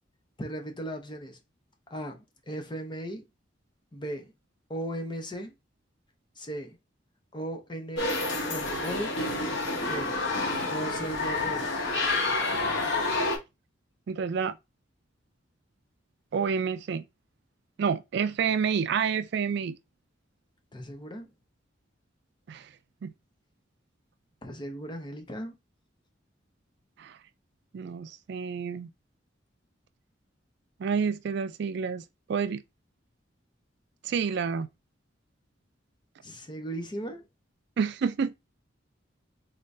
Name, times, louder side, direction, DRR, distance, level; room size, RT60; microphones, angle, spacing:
voice 1, 0.4-1.4 1.9-3.3 3.9-4.3 4.7-5.5 6.4-6.8 7.3-8.1 8.5-9.2 9.8-10.2 10.7-11.7 20.7-21.3 24.4-25.5 36.2-37.2, right 1 dB, 25° left, 0.7 m, -37 dB
sound 1, 8.0-13.4, left 2 dB, 80° left, 1.2 m, -29 dB
voice 2, 14.1-14.6 16.3-17.0 17.8-19.8 22.5-22.7 23.0-23.1 27.0-27.2 27.7-28.9 30.8-32.0 32.3-32.6 34.0-34.7 37.8-38.3, right 6 dB, 60° right, 0.3 m, -29 dB
3.7 x 3.3 x 2.6 m
head